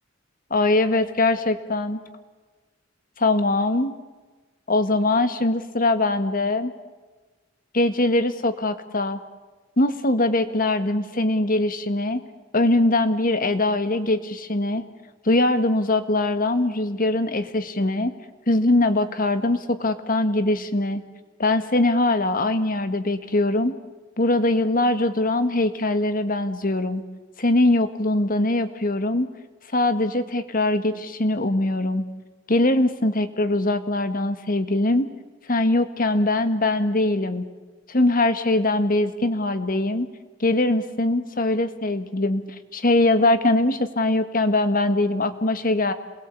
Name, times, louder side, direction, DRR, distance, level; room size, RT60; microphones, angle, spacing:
voice 1, 0.5-2.0 3.2-4.0 4.7-6.7 7.7-9.2 9.8-12.2 12.5-14.8 15.3-18.2 18.5-21.0 21.4-23.8 24.2-27.0 27.4-29.3 29.7-32.0 32.5-35.1 35.5-37.4 37.9-40.1 40.4-42.4 42.7-45.9, left 2 dB, 45° left, 10 dB, 1.7 m, -22 dB
27.5 x 21.0 x 8.5 m, 1.3 s
head